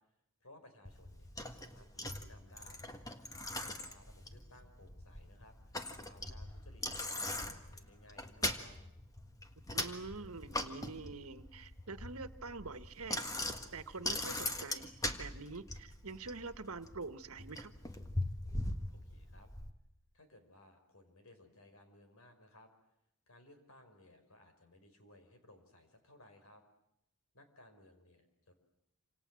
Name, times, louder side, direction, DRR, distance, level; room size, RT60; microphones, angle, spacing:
voice 1, 0.4-2.9 3.5-5.8 6.0-8.8 18.9-19.5 20.1-22.7 23.3-26.6 27.3-28.5, left 1 dB, 75° left, 7 dB, 5.5 m, -61 dB
Bicycle, 0.8-19.7, left 1 dB, 15° left, 1.7 m, -41 dB
voice 2, 9.7-13.3 13.7-17.7, right 3 dB, 75° right, 11 dB, 1.5 m, -46 dB
27.5 x 27.5 x 7.7 m, 0.81 s
head